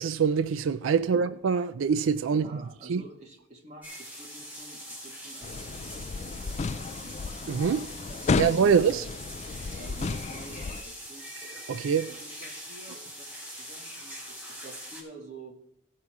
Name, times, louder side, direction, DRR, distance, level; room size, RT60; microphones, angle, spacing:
voice 1, 0.0-2.5 2.9-3.0 7.5-7.9 8.4-9.0 11.7-12.1, right 6 dB, 90° right, 0.4 m, -24 dB
voice 2, 2.3-7.2 8.1-9.0 9.6-11.3 12.1-15.5, right 2 dB, 35° right, 2.2 m, -49 dB
sound 1, 3.8-15.0, equal, 10° right, 3.7 m, -43 dB
sound 2, 5.4-10.8, left 4 dB, 35° left, 0.3 m, -33 dB
16.5 x 5.6 x 4.8 m
head